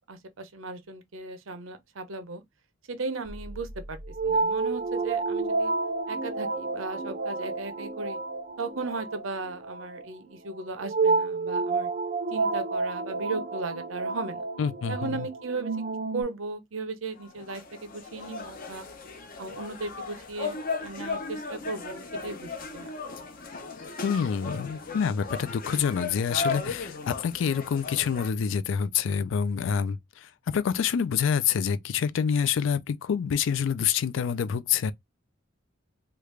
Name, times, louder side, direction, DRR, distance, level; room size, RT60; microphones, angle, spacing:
voice 1, 0.1-2.4 2.9-4.0 4.2-5.7 6.1-8.2 8.6-11.9 12.3-14.4 14.9-15.8 16.1-18.9 19.4-22.9, right 3 dB, 85° right, 0.7 m, -36 dB
sound 1, 3.3-16.2, right 3 dB, 40° right, 0.6 m, -30 dB
voice 2, 14.6-15.3 24.0-34.9, left 7 dB, 70° left, 0.3 m, -27 dB
sound 2, 17.2-28.3, left 4 dB, 45° left, 0.7 m, -36 dB
3.2 x 2.4 x 3.2 m
head